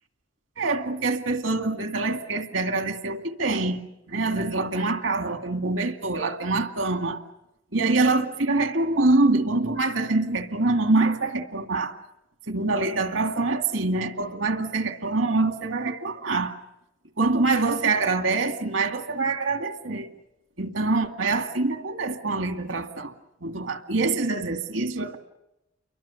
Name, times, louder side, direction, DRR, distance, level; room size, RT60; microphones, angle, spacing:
voice 1, 0.6-7.2 7.7-12.0 12.5-16.6 17.2-20.1 20.6-23.1 23.4-25.2, right 3 dB, 75° right, 2.2 m, -25 dB
30.0 x 23.5 x 7.1 m
head